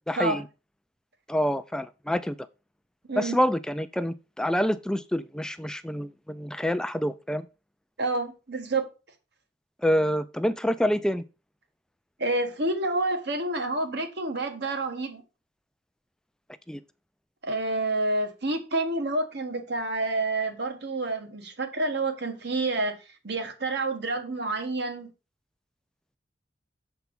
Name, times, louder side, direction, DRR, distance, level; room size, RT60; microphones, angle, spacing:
voice 1, 0.1-0.4 1.3-2.4 3.2-7.5 9.8-11.2 16.7-16.8, equal, 5° left, 0.4 m, -27 dB
voice 2, 8.0-8.9 12.2-15.2 17.4-23.0 23.2-25.1, right 2 dB, 60° right, 1.4 m, -28 dB
7.0 x 4.5 x 5.3 m
head